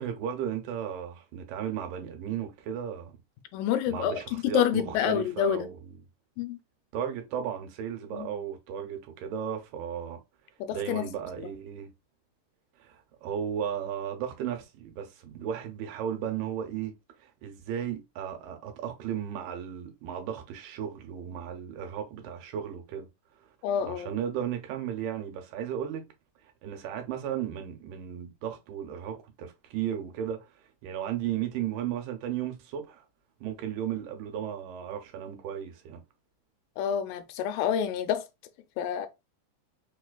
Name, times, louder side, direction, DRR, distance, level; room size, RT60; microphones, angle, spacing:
voice 1, 0.0-3.2 3.9-5.9 6.9-10.2 10.7-11.9 12.8-16.9 17.2-23.1 23.8-26.1 26.4-33.0 33.4-36.0, right 9 dB, 85° right, 2.5 m, -35 dB
voice 2, 3.5-5.7 6.4-6.6 8.1-8.3 10.6-11.1 23.6-24.1 36.8-38.2 38.8-39.1, left 9 dB, 80° left, 2.1 m, -28 dB
5.3 x 2.4 x 2.2 m
omnidirectional pair, 3.9 m